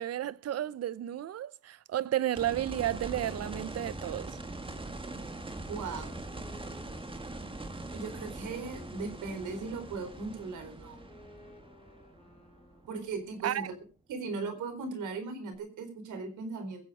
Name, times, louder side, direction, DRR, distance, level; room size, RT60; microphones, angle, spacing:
voice 1, 0.0-4.4 13.4-13.7, right 12 dB, 55° right, 0.8 m, -32 dB
sound 1, 2.4-13.3 15.5-15.6, right 2 dB, 15° right, 2.1 m, -42 dB
Wind instrument woodwind instrument, 5.3-13.1, left 2 dB, 20° left, 3.9 m, -57 dB
voice 2, 5.7-6.2 7.9-11.0 12.9-13.8 14.1-16.9, right 4 dB, 80° right, 4.4 m, -38 dB
22.0 x 8.2 x 4.9 m
cardioid pair, 90°, 30 cm